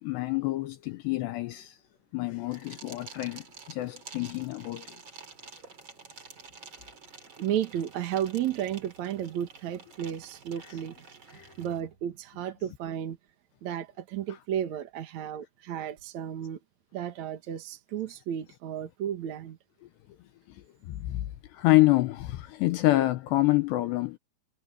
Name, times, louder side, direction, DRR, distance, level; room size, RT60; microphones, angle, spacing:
voice 1, 0.0-1.8 2.1-5.0 11.3-11.5 20.5-24.2, left 18 dB, 80° left, 2.6 m, -27 dB
sound 1, 2.5-11.8, right 4 dB, 30° right, 3.1 m, -49 dB
voice 2, 7.4-10.9 11.3-13.2 13.6-16.6 16.9-19.6, right 10 dB, 75° right, 1.7 m, -33 dB
omnidirectional pair, 5.8 m